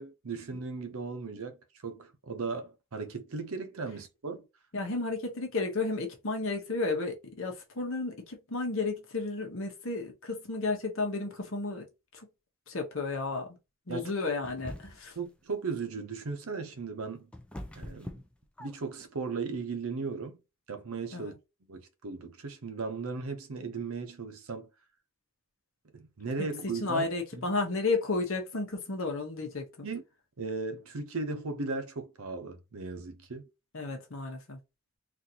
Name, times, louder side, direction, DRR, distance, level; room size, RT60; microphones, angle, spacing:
voice 1, 0.0-4.5 13.9-14.1 15.2-17.3 17.8-18.1 18.6-20.4 20.7-21.3 21.7-24.7 25.9-27.1 27.3-27.4 29.8-30.0 30.4-33.5, right 4 dB, 70° right, 0.7 m, -37 dB
voice 2, 4.7-11.9 12.1-12.3 12.7-13.6 13.9-15.2 21.1-21.3 26.6-29.9 33.7-34.6, left 3 dB, 65° left, 1.0 m, -32 dB
sound 1, 14.4-15.2 16.7-19.0, left 1 dB, 5° left, 0.4 m, -43 dB
4.0 x 2.6 x 2.8 m
head